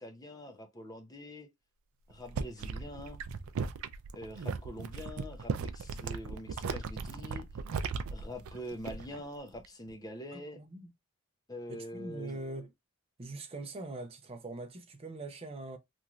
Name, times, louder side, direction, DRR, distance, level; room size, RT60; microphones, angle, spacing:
voice 1, 0.0-1.5 2.1-3.2 4.1-7.5 8.1-10.6 11.5-12.4, left 1 dB, 15° left, 0.6 m, -44 dB
sound 1, 2.1-9.2 9.5-9.9, right 5 dB, 65° right, 0.4 m, -37 dB
voice 2, 10.3-10.9 11.7-12.7 13.2-15.8, right 2 dB, 25° right, 0.6 m, -42 dB
3.0 x 2.7 x 2.4 m
head